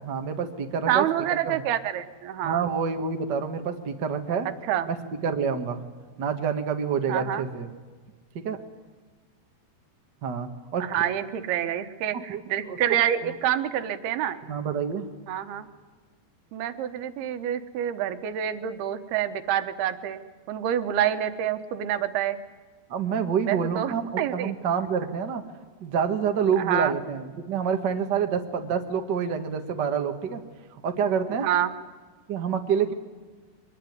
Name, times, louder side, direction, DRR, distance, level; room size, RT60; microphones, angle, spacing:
voice 1, 0.0-1.0 1.4-1.6 2.4-4.5 4.9-5.0 5.2-5.8 6.2-7.7 8.4-8.6 10.2-10.9 12.3-12.4 12.7-12.8 13.2-13.3 14.5-15.1 22.9-25.4 25.8-30.4 30.8-31.5 32.3-32.9, right 6 dB, 90° right, 5 dB, 0.9 m, -27 dB
voice 2, 0.9-2.7 4.7-4.9 7.1-7.5 10.8-14.4 15.3-15.7 16.5-20.2 20.5-22.4 23.5-24.5 26.6-26.9 31.4-31.7, right 10 dB, 75° right, 10 dB, 2.9 m, -27 dB
23.5 x 20.5 x 9.5 m, 1.4 s
omnidirectional pair, 4.8 m